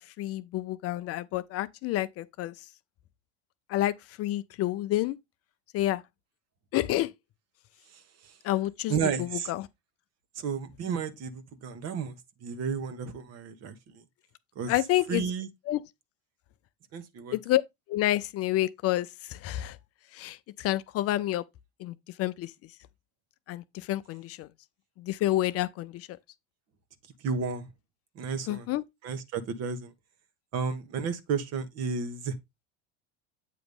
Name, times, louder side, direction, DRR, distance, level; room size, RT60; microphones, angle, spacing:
voice 1, 0.2-2.5 3.7-5.2 5.7-6.0 6.7-7.1 8.4-9.6 14.7-15.3 15.7-15.8 17.3-17.6 17.9-19.8 20.1-21.4 21.8-22.5 23.5-24.5 25.0-26.1 28.5-28.8, left 15 dB, 45° left, 0.5 m, -29 dB
voice 2, 7.9-8.4 8.9-9.5 10.3-14.0 14.5-14.7 15.1-15.5 16.9-17.4 27.2-27.7 28.1-28.7 29.0-29.9 30.5-32.4, right 6 dB, 45° right, 1.3 m, -32 dB
8.4 x 2.9 x 5.3 m
supercardioid pair, 110°, 35 cm